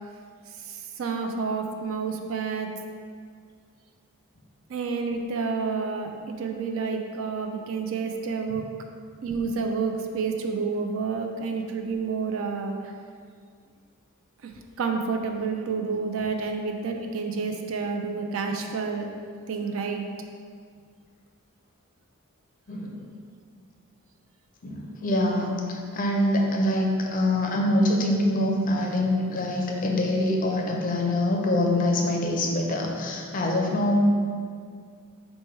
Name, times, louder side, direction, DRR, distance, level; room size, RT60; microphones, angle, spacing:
voice 1, 0.5-2.7 4.7-8.6 9.2-12.9 14.4-14.5 14.8-19.1 19.5-20.1, right 5 dB, 65° right, 3 dB, 0.4 m, -29 dB
voice 2, 22.7-23.0 24.6-34.0, left 1 dB, 40° left, 0 dB, 0.5 m, -24 dB
4.4 x 2.2 x 4.5 m, 2.1 s
head